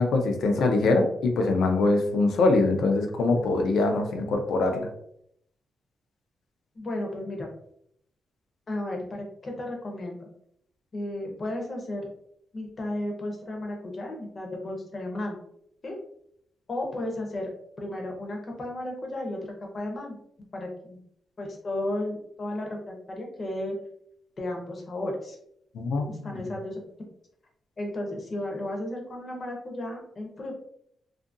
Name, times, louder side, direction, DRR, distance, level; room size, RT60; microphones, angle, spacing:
voice 1, 0.0-4.9 25.7-26.4, left 3 dB, 75° left, 4 dB, 0.5 m, -23 dB
voice 2, 6.7-7.5 8.7-10.3 10.9-12.1 12.5-15.4 15.8-16.0 16.7-17.5 17.8-19.4 19.7-20.2 20.5-21.0 21.4-23.7 24.4-25.4 26.0-26.8 27.8-30.6, left 1 dB, 35° left, 1 dB, 0.7 m, -34 dB
2.7 x 2.4 x 2.5 m, 0.71 s
wide cardioid pair, 150°, 0 cm